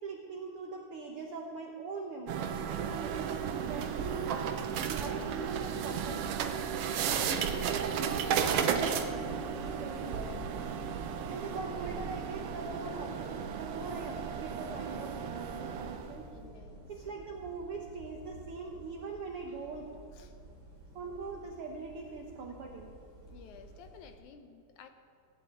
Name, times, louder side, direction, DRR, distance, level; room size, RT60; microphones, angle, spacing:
voice 1, 0.0-2.5 2.9-4.5 4.8-6.7 7.1-10.6 11.3-16.3 16.9-19.9 20.9-22.9, right 4 dB, 70° right, 1 dB, 1.3 m, -42 dB
sound 1, 2.3-16.2, right 7 dB, 90° right, 1.3 m, -34 dB
sound 2, 5.8-24.2, right 1 dB, 40° right, 3.0 m, -51 dB
voice 2, 16.3-16.8 20.1-20.3 23.3-24.9, left 7 dB, 75° left, 7 dB, 2.0 m, -53 dB
16.5 x 7.5 x 8.9 m, 2.4 s
omnidirectional pair, 3.8 m